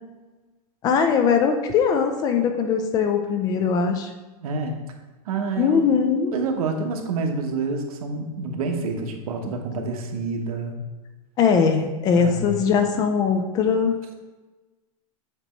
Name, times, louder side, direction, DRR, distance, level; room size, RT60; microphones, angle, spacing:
voice 1, 0.8-4.1 5.6-6.3 11.4-14.0, left 6 dB, 20° left, 6 dB, 0.4 m, -21 dB
voice 2, 4.4-4.8 5.2-5.8 6.3-10.8 12.1-12.6, right 4 dB, 80° right, 4 dB, 1.0 m, -28 dB
7.9 x 3.0 x 4.4 m, 1.2 s
supercardioid pair, 165°, 18 cm